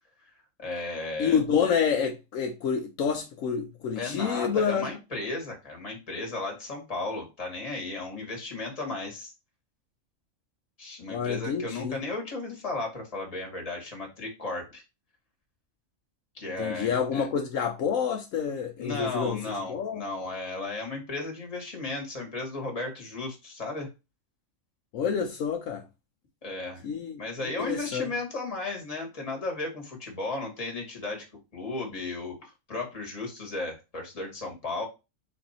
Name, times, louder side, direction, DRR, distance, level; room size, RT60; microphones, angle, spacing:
voice 1, 0.6-1.4 3.9-9.3 10.8-14.8 16.3-17.3 18.8-23.9 26.4-26.8 27.2-31.3 31.5-34.9, left 2 dB, 30° left, 1.4 m, -35 dB
voice 2, 1.2-4.9 11.1-12.0 16.6-19.4 19.7-20.0 24.9-25.8 26.8-28.1, left 7 dB, 75° left, 1.0 m, -28 dB
3.9 x 2.6 x 4.1 m
omnidirectional pair, 1.4 m